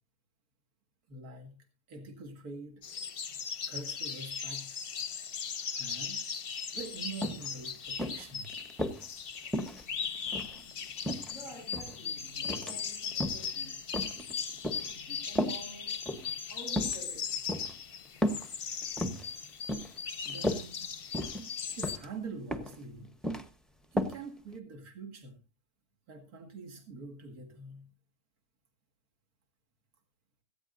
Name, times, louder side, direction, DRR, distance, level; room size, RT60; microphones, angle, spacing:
voice 1, 1.1-2.8 3.7-4.8 5.7-6.4 6.7-8.5 20.2-20.9 21.8-23.1 23.9-25.4 26.1-27.9, right 3 dB, 70° right, 2.5 m, -45 dB
sound 1, 2.8-22.0, left 6 dB, 45° left, 0.8 m, -38 dB
sound 2, 6.8-6.9 7.2-7.5 8.0-9.0 9.5-10.6 11.0-12.0 12.4-12.8 13.1-13.5 13.9-14.9 15.4-15.6 16.0-16.3 16.7-17.0 17.5-17.7 18.2-18.5 18.8-19.3 19.7-20.0 20.3-20.6 21.1-21.5 21.8-22.1 22.5-22.8 23.0-23.5 24.0-24.2 24.5-24.6, equal, ahead, 0.7 m, -33 dB
voice 2, 11.1-13.8 14.8-16.0 16.5-17.4 18.3-18.5, equal, 55° right, 7.8 m, -49 dB
17.5 x 14.5 x 2.6 m
omnidirectional pair, 1.6 m